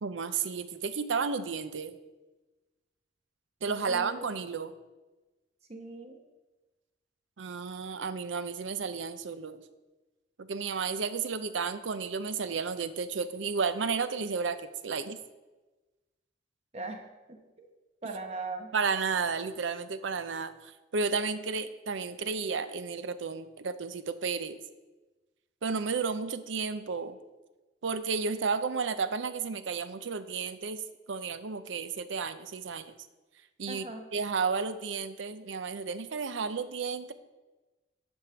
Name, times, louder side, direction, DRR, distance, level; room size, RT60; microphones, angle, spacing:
voice 1, 0.0-2.0 3.6-4.7 7.4-9.6 10.4-15.2 18.7-24.6 25.6-27.2 27.8-30.8 31.1-32.9 33.6-33.9 34.1-37.1, right 5 dB, 75° right, 12 dB, 0.5 m, -32 dB
voice 2, 3.7-4.2 5.7-6.2 16.7-17.0 17.3-17.7 18.0-18.7 33.7-34.1, right 3 dB, 35° right, 3 dB, 1.0 m, -40 dB
10.5 x 3.6 x 6.9 m, 1.2 s
head